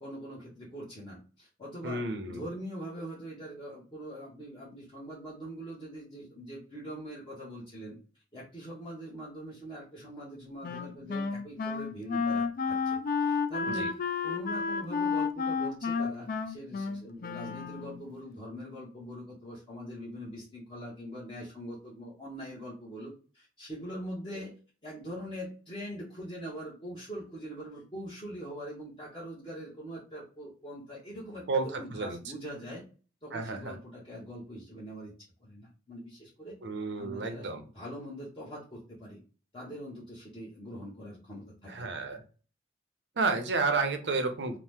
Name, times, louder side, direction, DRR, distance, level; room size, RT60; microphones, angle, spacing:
voice 1, 0.0-8.0 8.3-24.5 24.8-32.8 33.2-35.1 35.4-36.6 37.0-37.5 37.7-39.2 39.5-41.8, equal, 25° left, -7 dB, 0.8 m, -43 dB
voice 2, 1.8-2.4 13.7-13.9 31.5-32.2 33.3-33.8 36.6-37.6 41.7-42.2 43.2-44.6, right 3 dB, 70° right, 6 dB, 0.6 m, -31 dB
Wind instrument woodwind instrument, 10.6-18.1, left 5 dB, 50° left, 0.3 m, -31 dB
2.9 x 2.0 x 3.3 m, 0.37 s
head